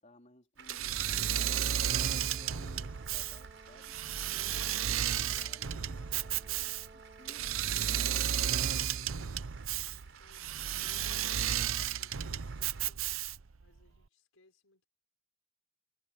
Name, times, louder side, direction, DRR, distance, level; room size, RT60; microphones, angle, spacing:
voice 1, 0.0-4.0 4.4-7.5 7.8-9.4, left 1 dB, 35° left, 3.9 m, -59 dB
Applause, 0.6-12.9, right 6 dB, 60° right, 6.5 m, -56 dB
Engine / Mechanisms, 0.7-13.6, right 10 dB, 80° right, 0.7 m, -33 dB
Brass instrument, 1.3-7.7, right 3 dB, 30° right, 1.3 m, -56 dB
voice 2, 4.3-4.8 9.6-13.2 13.6-14.9, left 2 dB, 85° left, 5.3 m, -66 dB
head